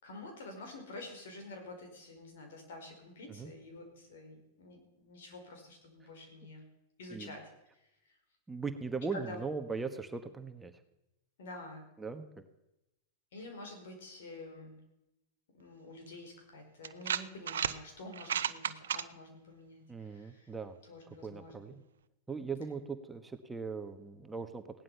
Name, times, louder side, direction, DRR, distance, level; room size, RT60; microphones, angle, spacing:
voice 1, 0.0-6.6 7.0-7.4 7.8-8.2 9.1-9.4 11.4-11.8 13.3-14.8 15.5-20.5 20.9-21.7, left 2 dB, 75° left, 4 dB, 4.9 m, -48 dB
voice 2, 8.5-10.7 12.0-12.3 19.9-20.8 21.1-21.8 22.3-24.6, right 4 dB, 10° right, 7 dB, 1.2 m, -39 dB
sound 1, 16.1-16.2 16.8-17.8 18.1-19.0, right 9 dB, 85° right, 0.7 m, -33 dB
17.0 x 11.0 x 5.7 m, 0.91 s
hypercardioid pair, 115°, 0 cm